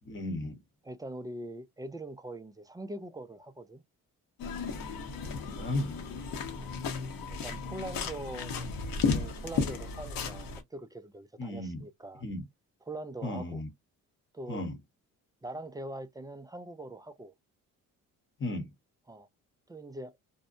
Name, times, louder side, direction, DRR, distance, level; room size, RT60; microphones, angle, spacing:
voice 1, 0.0-0.6 5.4-6.0 11.4-11.8 12.2-12.4 13.2-13.7 14.5-14.8 18.4-18.7, left 1 dB, 35° left, 0.9 m, -35 dB
voice 2, 0.8-3.8 6.6-6.8 7.3-12.2 12.9-13.6 14.3-14.7 15.4-17.3 19.1-19.3 19.7-20.1, right 1 dB, 10° right, 0.3 m, -43 dB
sound 1, 4.4-10.6, left 5 dB, 75° left, 0.9 m, -34 dB
2.6 x 2.1 x 2.4 m
cardioid pair, 90°, 34 cm